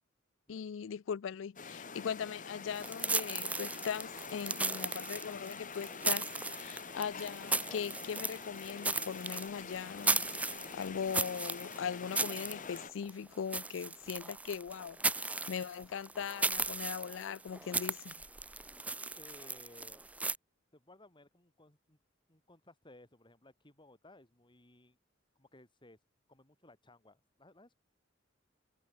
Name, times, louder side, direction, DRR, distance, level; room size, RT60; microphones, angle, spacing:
voice 1, 0.5-10.3 10.7-18.1, left 7 dB, 70° left, 0.4 m, -40 dB
sound 1, 1.6-12.9, left 5 dB, 45° left, 1.6 m, -46 dB
sound 2, 2.7-20.4, right 3 dB, 5° right, 0.5 m, -37 dB
voice 2, 19.2-20.1 20.7-22.0 22.3-25.0 25.4-26.0 26.3-27.8, left 1 dB, 25° left, 4.4 m, -59 dB
head